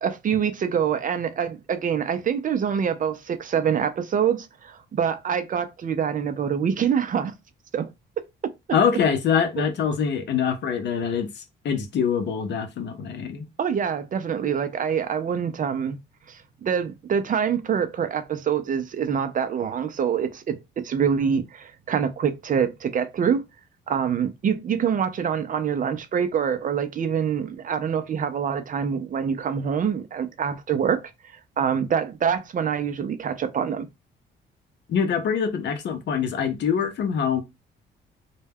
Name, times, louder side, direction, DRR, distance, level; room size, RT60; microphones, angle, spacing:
voice 1, 0.0-7.3 7.7-7.9 8.4-8.8 9.6-9.7 13.6-16.0 16.3-23.4 23.9-31.0 31.3-33.9, right 7 dB, 40° right, 0.4 m, -25 dB
voice 2, 8.7-13.5 34.9-37.4, left 7 dB, 60° left, 0.6 m, -24 dB
2.1 x 2.1 x 3.4 m
cardioid pair, 90°, 20 cm